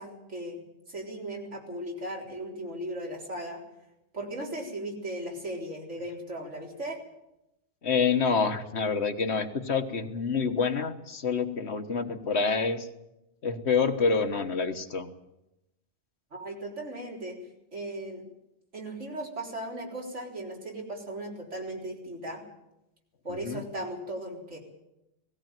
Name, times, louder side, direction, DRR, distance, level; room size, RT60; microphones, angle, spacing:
voice 1, 0.0-3.6 4.1-7.0 16.3-17.4 17.7-18.2 18.7-22.4 23.2-24.6, right 1 dB, 75° right, -1 dB, 4.3 m, -37 dB
voice 2, 7.8-12.9 13.4-15.1 23.4-23.6, left 5 dB, 60° left, 7 dB, 1.5 m, -27 dB
18.0 x 16.5 x 9.1 m, 0.91 s
omnidirectional pair, 1.2 m